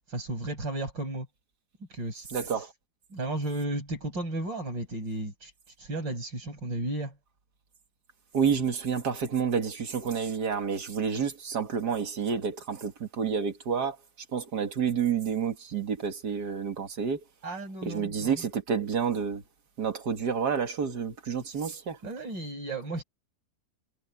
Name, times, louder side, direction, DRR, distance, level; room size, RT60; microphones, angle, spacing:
voice 1, 0.1-1.3 1.9-2.5 3.1-5.5 5.8-7.2 17.4-18.5 22.0-23.0, right 2 dB, 85° right, 7.5 m, -34 dB
voice 2, 2.3-2.7 8.3-14.0 14.3-17.2 17.8-19.4 19.8-22.0, right 6 dB, 60° right, 2.5 m, -29 dB
omnidirectional pair, 1.9 m